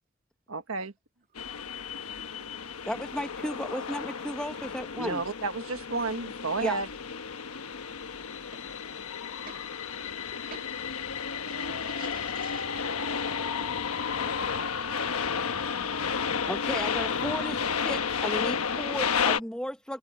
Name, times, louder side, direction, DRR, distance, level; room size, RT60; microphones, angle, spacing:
voice 1, 0.5-0.9 5.0-6.9, right 3 dB, 65° right, 1.6 m, -31 dB
sound 1, 1.4-19.4, left 6 dB, 80° left, 1.2 m, -32 dB
voice 2, 2.8-5.2 6.6-6.8 16.5-17.6 17.8-20.0, equal, 5° left, 0.9 m, -34 dB
voice 3, 9.2-9.7 10.3-10.7 11.4-13.1 13.5-13.8 16.7-16.9, right 5 dB, 40° right, 2.2 m, -49 dB
head